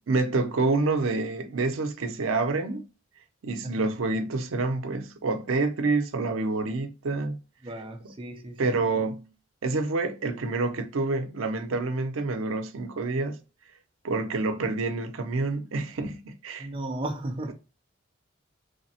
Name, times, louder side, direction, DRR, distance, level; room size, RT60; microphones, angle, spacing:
voice 1, 0.1-2.8 3.4-7.4 8.6-9.3 9.6-13.4 14.0-16.7, right 3 dB, 85° right, 0.5 m, -27 dB
voice 2, 7.6-8.8 16.6-17.5, right 1 dB, 25° right, 0.4 m, -35 dB
3.3 x 2.0 x 2.7 m
head